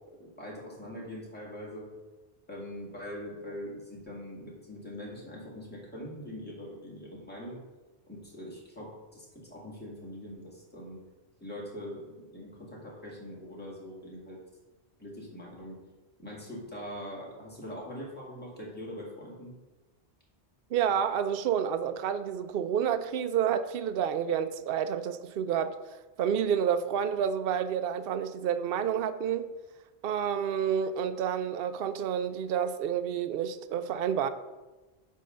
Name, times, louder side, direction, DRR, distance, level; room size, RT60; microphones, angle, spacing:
voice 1, 0.2-1.9 2.5-7.6 8.1-11.0 11.4-14.4 15.0-15.8 16.2-19.5, equal, 10° left, 2.2 m, -42 dB
voice 2, 20.7-25.7 26.2-29.5 30.0-34.3, right 8 dB, 65° right, 0.7 m, -29 dB
9.7 x 3.7 x 6.5 m
omnidirectional pair, 1.1 m